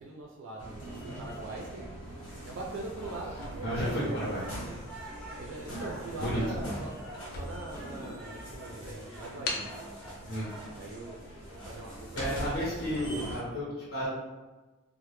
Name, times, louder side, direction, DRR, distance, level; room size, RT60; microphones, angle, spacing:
voice 1, 0.0-2.2 2.4-4.3 5.4-6.9 7.3-9.7 10.0-10.2 10.7-11.2 11.5-13.3, right 2 dB, 65° right, -1 dB, 0.3 m, -42 dB
sound 1, 0.6-13.4, equal, 85° left, 1.1 m, -43 dB
sound 2, 2.9-11.9, right 1 dB, ahead, 0.6 m, -48 dB
sound 3, 3.4-4.6 5.3-5.5 5.8-5.9 6.1-7.9 8.4-8.5 9.4-9.8, left 2 dB, 45° left, 0.3 m, -39 dB
voice 2, 3.6-4.4 6.2-6.4 10.2-10.5 12.1-14.1, equal, 70° left, -7 dB, 0.7 m, -32 dB
2.1 x 2.0 x 2.9 m, 1.2 s
head